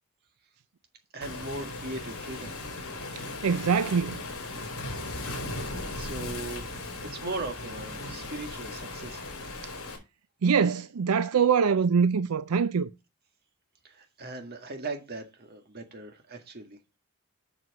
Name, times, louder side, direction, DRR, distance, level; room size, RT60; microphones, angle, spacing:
voice 1, 1.1-2.6 5.6-6.7 7.0-9.4 13.8-16.8, right 2 dB, 45° right, 1.8 m, -39 dB
Waves surf, 1.2-10.0, left 2 dB, 65° left, 3.6 m, -37 dB
voice 2, 3.4-4.2 10.4-12.9, right 6 dB, 80° right, 0.5 m, -23 dB
7.8 x 6.1 x 5.3 m
head